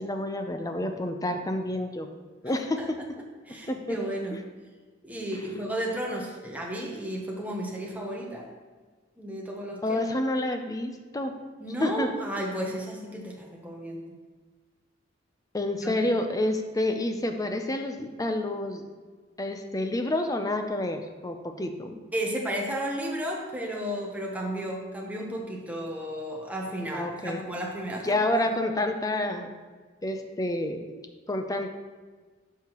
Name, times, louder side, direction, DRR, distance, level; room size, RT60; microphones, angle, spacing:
voice 1, 0.0-2.1 2.4-3.0 3.5-4.0 9.8-11.4 11.8-12.1 15.5-18.8 19.4-22.0 26.9-27.4 28.0-29.5 30.0-30.9 31.3-31.7, left 1 dB, 20° left, 6 dB, 0.6 m, -29 dB
voice 2, 3.4-4.4 5.0-8.5 9.2-10.0 11.6-14.2 15.8-16.1 22.1-28.4, right 1 dB, 10° right, -1 dB, 0.9 m, -33 dB
10.5 x 5.7 x 3.0 m, 1.4 s
head